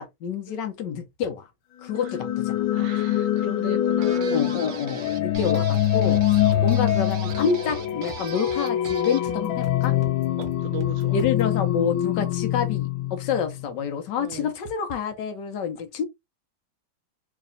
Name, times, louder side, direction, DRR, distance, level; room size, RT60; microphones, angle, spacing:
voice 1, 0.0-1.5 1.8-2.9 4.3-6.2 6.6-10.0 11.1-16.0, left 7 dB, 70° left, 1.3 m, -28 dB
sound 1, 1.8-13.8, left 11 dB, 85° left, 1.4 m, -24 dB
voice 2, 2.7-4.7 5.5-5.7 6.5-6.7 10.4-11.2 14.2-14.5, right 9 dB, 75° right, 1.4 m, -38 dB
sound 2, 4.0-9.3, right 6 dB, 60° right, 0.8 m, -40 dB
sound 3, 5.3-11.5, right 2 dB, 15° left, 1.3 m, -44 dB
3.3 x 2.9 x 3.7 m
omnidirectional pair, 2.1 m